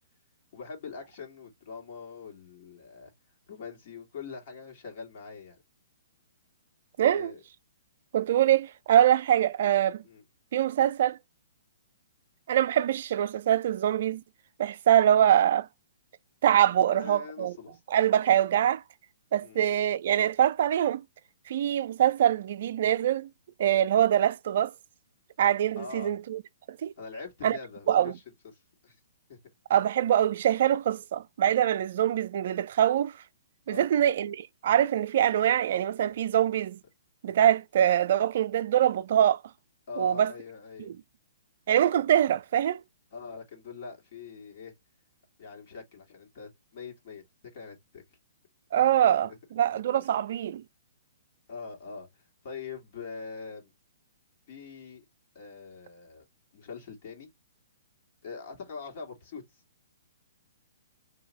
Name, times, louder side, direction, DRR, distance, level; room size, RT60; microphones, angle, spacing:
voice 1, 0.5-3.1 3.5-5.6 7.0-7.4 10.0-10.2 16.8-17.8 19.4-19.6 25.7-26.1 27.0-28.2 28.5-29.0 29.3-29.4 33.7-33.9 39.9-40.9 43.1-44.7 45.4-47.2 47.5-48.0 48.7-49.0 49.3-49.4 50.0-50.1 51.5-53.7 54.5-55.0 55.3-56.2 56.5-57.3 58.2-59.6, left 5 dB, 50° left, 1.8 m, -43 dB
voice 2, 7.0-7.3 8.1-10.0 10.5-11.2 12.5-14.2 14.6-15.7 16.4-17.5 17.9-18.8 19.3-21.0 21.5-23.3 23.6-24.7 25.4-26.4 26.7-26.9 27.4-27.6 27.9-28.1 29.7-33.1 33.7-36.8 37.2-39.4 40.0-40.3 40.9-41.0 41.7-42.8 48.7-50.6, right 10 dB, 55° right, 0.3 m, -24 dB
3.9 x 2.8 x 4.1 m
figure-of-eight pair, 125°, 0 cm